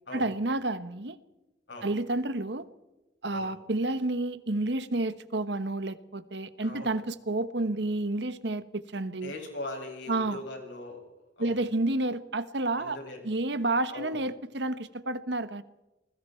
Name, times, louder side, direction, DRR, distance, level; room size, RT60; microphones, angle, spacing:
voice 1, 0.1-1.2 1.8-2.7 3.2-9.3 10.1-10.4 11.4-13.0 13.2-15.6, right 2 dB, 70° right, 1.2 m, -30 dB
voice 2, 6.6-7.0 9.2-11.0 11.4-11.6 12.8-13.2 13.9-14.2, left 2 dB, 80° left, 7.0 m, -40 dB
28.5 x 20.5 x 4.5 m
head